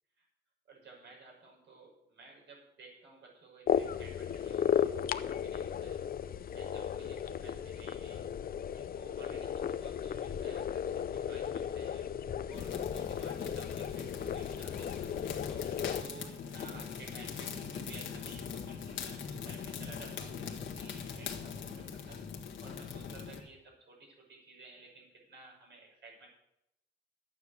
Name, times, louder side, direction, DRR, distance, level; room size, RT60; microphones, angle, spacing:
voice 1, 0.7-6.0 6.5-8.3 8.7-12.1 12.5-15.1 15.5-22.2 22.6-26.3, right 3 dB, 70° right, -1 dB, 6.1 m, -54 dB
sound 1, 3.7-16.0, left 8 dB, 50° left, 0.6 m, -35 dB
sound 2, 12.5-23.4, left 6 dB, 85° left, 1.8 m, -41 dB
11.5 x 9.3 x 6.7 m, 0.84 s
cardioid pair, 130°, 19 cm